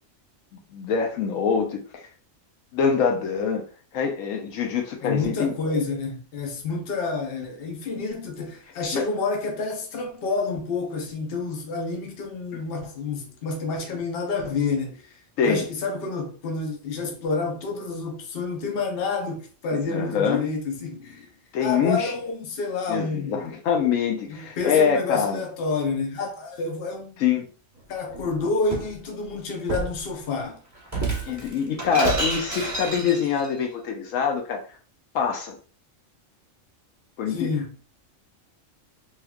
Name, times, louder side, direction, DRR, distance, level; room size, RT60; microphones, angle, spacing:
voice 1, 0.5-1.8 2.7-3.6 3.9-5.5 8.9-9.1 12.5-12.6 15.4-15.7 19.7-20.4 21.5-22.1 22.9-25.4 27.2-27.4 31.3-34.6 35.1-35.6 37.2-37.5, left 6 dB, 80° left, 1.0 m, -24 dB
voice 2, 5.0-15.2 15.4-21.3 21.6-23.4 24.3-27.1 27.9-30.6 37.3-37.9, left 4 dB, 50° left, 0.9 m, -29 dB
Shatter, 28.1-28.9 29.7-30.0 30.9-33.5, right 3 dB, 15° right, 0.6 m, -29 dB
3.2 x 3.1 x 2.3 m
omnidirectional pair, 1.4 m